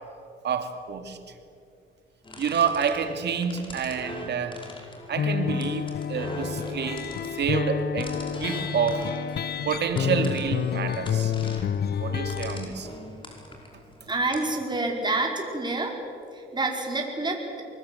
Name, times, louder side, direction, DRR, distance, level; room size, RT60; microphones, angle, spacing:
voice 1, 0.4-1.2 2.4-4.6 5.1-7.1 7.3-8.1 8.4-9.1 9.6-11.3 12.0-12.9, right 6 dB, 60° right, 7 dB, 2.6 m, -28 dB
sound 1, 2.2-14.6, left 1 dB, 25° left, 5.2 m, -43 dB
sound 2, 5.2-12.6, left 8 dB, 55° left, 0.8 m, -29 dB
voice 2, 14.1-16.0 16.3-17.6, right 2 dB, 20° right, 0 dB, 5.2 m, -28 dB
25.0 x 20.0 x 8.1 m, 2.4 s
cardioid pair, 90°, 20 cm